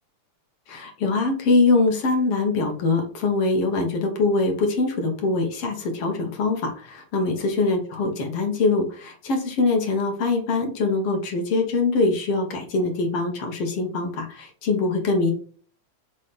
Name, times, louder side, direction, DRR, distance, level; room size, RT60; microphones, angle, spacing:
voice 1, 0.7-15.3, left 3 dB, 55° left, 4 dB, 2.1 m, -23 dB
5.5 x 4.0 x 5.0 m, 0.42 s
omnidirectional pair, 3.5 m